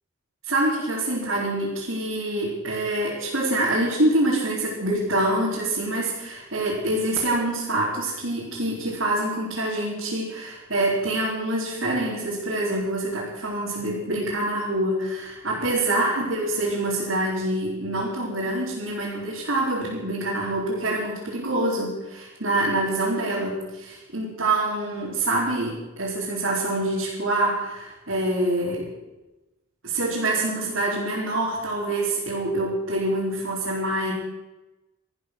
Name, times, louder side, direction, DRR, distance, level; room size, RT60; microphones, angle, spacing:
voice 1, 0.5-28.9 29.8-34.1, right 1 dB, 80° right, -7 dB, 4.4 m, -26 dB
14.0 x 13.5 x 6.3 m, 1.0 s
head